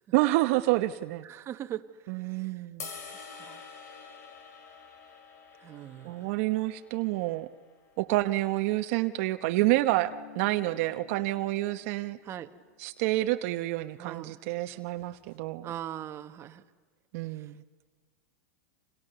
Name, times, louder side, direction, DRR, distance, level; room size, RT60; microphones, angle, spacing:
voice 1, 0.1-1.2 2.1-2.9 6.0-7.5 8.0-12.2 12.8-15.7 17.1-17.6, right 18 dB, 55° right, 8 dB, 1.0 m, -28 dB
voice 2, 1.2-2.7 3.0-3.7 5.6-6.4 12.2-12.5 14.0-14.4 15.6-16.6 17.1-17.6, right 11 dB, 30° right, 8 dB, 1.3 m, -42 dB
sound 1, 2.8-9.0, left 5 dB, 85° left, 6.2 m, -48 dB
sound 2, 9.4-13.0 13.5-13.6 14.1-14.2 15.0-15.4, left 10 dB, 50° left, 2.2 m, -52 dB
30.0 x 26.5 x 6.9 m, 1.5 s
supercardioid pair, 130°, 9 cm